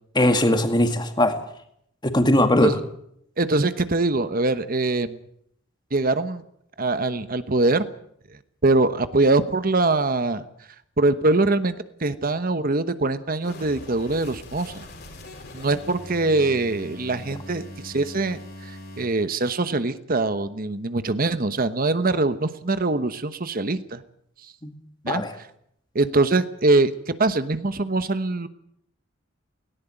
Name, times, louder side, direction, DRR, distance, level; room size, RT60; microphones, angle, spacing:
voice 1, 0.2-1.3 2.0-2.7 24.6-24.7 25.1-25.3, left 1 dB, 20° left, 7 dB, 2.1 m, -20 dB
voice 2, 3.4-5.1 5.9-6.4 6.8-7.9 8.6-10.4 11.0-14.8 15.5-24.0 25.0-25.2 25.9-28.5, right 2 dB, 45° right, 12 dB, 1.1 m, -23 dB
sound 1, 13.4-19.1, left 1 dB, 55° left, 4.8 m, -41 dB
18.0 x 17.5 x 9.0 m, 0.72 s
head